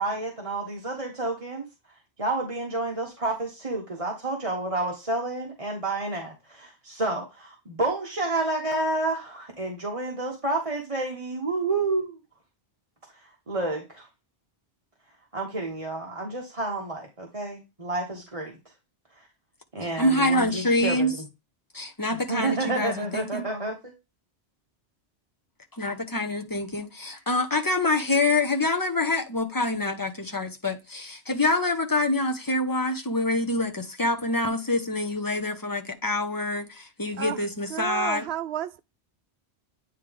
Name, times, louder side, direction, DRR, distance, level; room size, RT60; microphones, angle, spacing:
voice 1, 0.0-1.7 2.2-12.2 13.1-14.1 15.3-18.6 19.7-21.3 22.3-23.9, right 2 dB, 30° right, 1.4 m, -30 dB
voice 2, 20.0-21.1 21.7-23.5 25.7-38.3, left 2 dB, 20° left, 1.0 m, -26 dB
voice 3, 37.7-38.8, right 10 dB, 75° right, 0.8 m, -31 dB
9.4 x 3.4 x 3.5 m
omnidirectional pair, 1.1 m